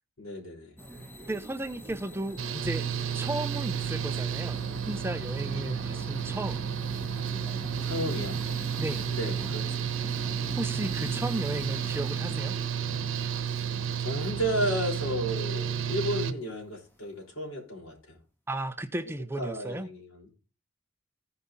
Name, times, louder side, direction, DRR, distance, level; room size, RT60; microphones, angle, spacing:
voice 1, 0.2-0.8 7.8-8.4 9.1-9.9 13.5-13.6 14.0-18.2 19.4-20.3, equal, 80° left, 5.2 m, -33 dB
sound 1, 0.8-16.1, right 1 dB, 10° left, 1.7 m, -42 dB
voice 2, 1.3-2.9 3.1-6.7 8.8-9.1 10.6-12.6 18.5-19.9, right 1 dB, 10° right, 0.5 m, -34 dB
Engine / Mechanical fan, 2.4-16.3, right 8 dB, 75° right, 1.0 m, -32 dB
15.5 x 5.5 x 4.0 m
head